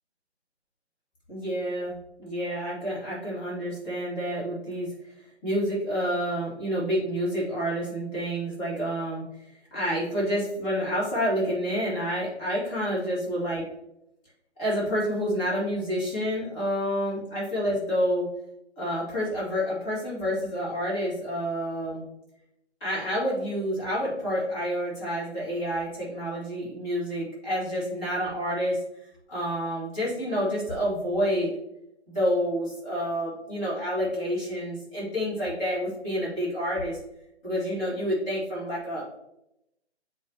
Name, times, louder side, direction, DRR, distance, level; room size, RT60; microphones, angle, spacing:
voice 1, 1.3-1.9 2.2-4.9 5.4-9.3 9.7-13.7 14.6-18.3 18.8-22.0 22.8-28.8 29.3-31.5 32.1-37.0 37.4-39.2, equal, 15° left, -7 dB, 2.3 m, -28 dB
7.4 x 4.4 x 2.9 m, 0.83 s
figure-of-eight pair, 145°, 33 cm